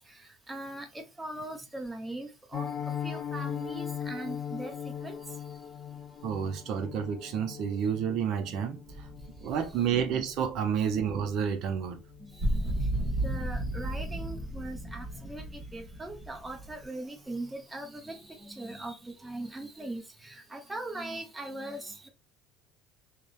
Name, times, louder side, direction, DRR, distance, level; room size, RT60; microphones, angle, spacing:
voice 1, 0.5-2.7 3.0-5.1 9.9-10.0 12.2-12.5 13.2-22.1, right 2 dB, 10° right, 0.6 m, -40 dB
Piano, 2.5-13.4 13.7-13.9 14.2-14.4 14.7-15.0 15.3-15.4, left 8 dB, 55° left, 0.7 m, -40 dB
voice 2, 6.2-8.8 9.4-12.0, right 7 dB, 60° right, 0.4 m, -30 dB
sound 1, 8.9-10.8 12.4-16.9, right 1 dB, 40° right, 0.9 m, -34 dB
2.8 x 2.0 x 2.4 m
supercardioid pair, 115°, 0 cm